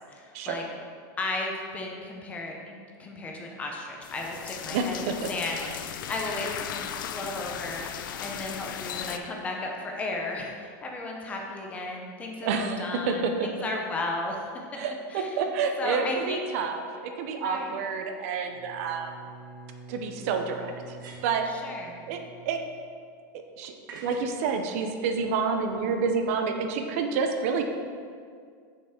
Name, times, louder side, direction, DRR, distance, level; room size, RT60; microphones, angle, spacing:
voice 1, 0.1-0.6 1.2-14.5 15.1-15.4 15.8-16.4 17.4-17.8 21.5-22.0, left 2 dB, 15° left, 0 dB, 0.5 m, -35 dB
sound 1, 4.0-9.2, left 9 dB, 85° left, 0.5 m, -36 dB
voice 2, 4.7-5.3 12.4-13.5 14.8-19.1 19.9-21.0 21.2-21.5 22.1-22.6 23.6-27.6, right 5 dB, 45° right, 5 dB, 0.6 m, -29 dB
Bowed string instrument, 18.4-23.2, right 4 dB, 65° right, 1.4 m, -47 dB
sound 2, 19.0-19.1 20.8-21.5 23.9-24.3, right 3 dB, 85° right, 1.2 m, -47 dB
6.6 x 5.5 x 4.3 m, 2.1 s
supercardioid pair, 180°, 11 cm